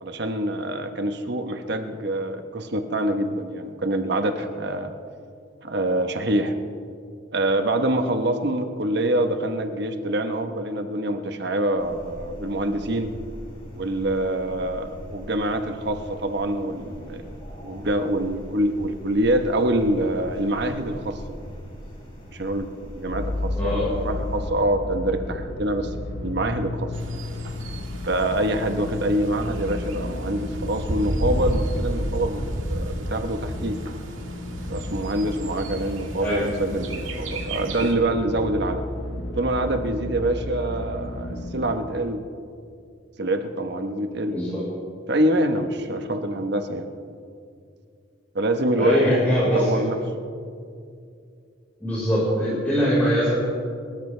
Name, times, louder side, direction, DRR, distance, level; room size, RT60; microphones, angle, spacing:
voice 1, 0.0-4.9 5.6-6.6 7.3-13.1 13.7-17.2 17.6-21.2 22.3-25.9 26.2-26.9 28.1-32.4 32.7-33.8 34.6-38.8 39.4-42.2 43.2-44.4 45.1-46.8 48.3-49.1 49.5-50.0, right 1 dB, 55° right, 6 dB, 1.2 m, -25 dB
sound 1, 11.8-24.5, equal, 25° left, 4.7 m, -41 dB
sound 2, 23.1-41.7, left 1 dB, 80° left, 1.1 m, -33 dB
voice 2, 23.5-23.9 36.2-36.4 44.3-44.6 48.8-49.8 51.8-53.3, equal, 10° left, -11 dB, 4.8 m, -22 dB
Bird, 26.9-38.0, right 1 dB, 85° right, 1.9 m, -32 dB
28.5 x 14.0 x 3.4 m, 2.4 s
head